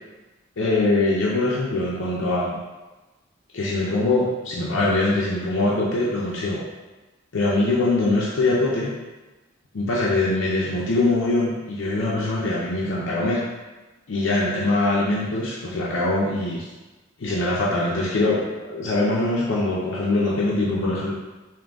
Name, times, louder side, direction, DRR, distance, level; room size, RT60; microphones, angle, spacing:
voice 1, 0.6-2.6 3.5-6.6 7.3-8.9 9.7-13.4 14.1-16.7 17.2-21.1, left 2 dB, 70° left, -6 dB, 0.6 m, -23 dB
3.8 x 2.6 x 3.5 m, 1.2 s
head